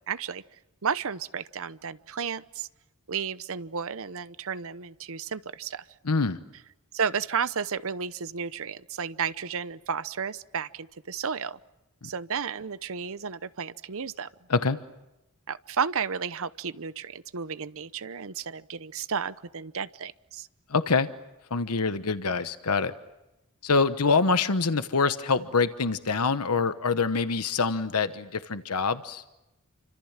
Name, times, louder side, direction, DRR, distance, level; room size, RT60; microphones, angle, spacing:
voice 1, 0.1-0.4 0.8-2.7 3.1-5.9 6.9-11.6 12.0-14.3 15.5-20.5, right 6 dB, 65° right, 15 dB, 0.9 m, -32 dB
voice 2, 6.1-6.4 14.5-14.8 20.7-21.1 21.5-22.9 23.6-29.2, left 4 dB, 85° left, 11 dB, 1.1 m, -25 dB
29.0 x 25.5 x 7.4 m, 0.94 s
head